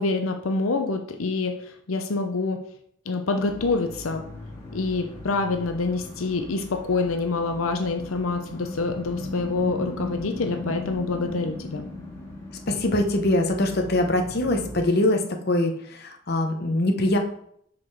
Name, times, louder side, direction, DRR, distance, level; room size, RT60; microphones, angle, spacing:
voice 1, 0.0-2.6 3.1-4.2 4.7-11.8, left 3 dB, 85° left, 5 dB, 0.7 m, -26 dB
sound 1, 3.4-14.8, left 2 dB, 15° left, 2.0 m, -38 dB
voice 2, 12.7-17.2, left 1 dB, 50° left, 3 dB, 0.9 m, -23 dB
5.7 x 5.0 x 4.8 m, 0.68 s
head